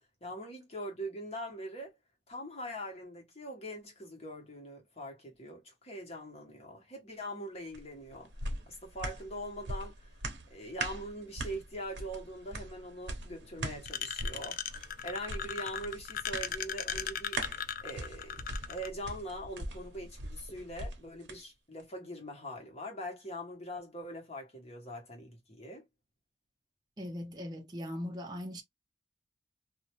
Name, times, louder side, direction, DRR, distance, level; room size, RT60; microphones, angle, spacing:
voice 1, 0.2-2.0 2.3-10.1 10.5-14.8 15.0-17.4 17.8-18.4 18.7-25.9, equal, 35° left, 1.2 m, -42 dB
sound 1, 7.7-21.4 21.8-21.9, right 2 dB, 75° right, 0.8 m, -42 dB
sound 2, 13.9-18.9, left 9 dB, 50° left, 0.3 m, -37 dB
voice 2, 27.0-28.6, left 1 dB, 25° right, 0.6 m, -39 dB
2.6 x 2.1 x 2.9 m
head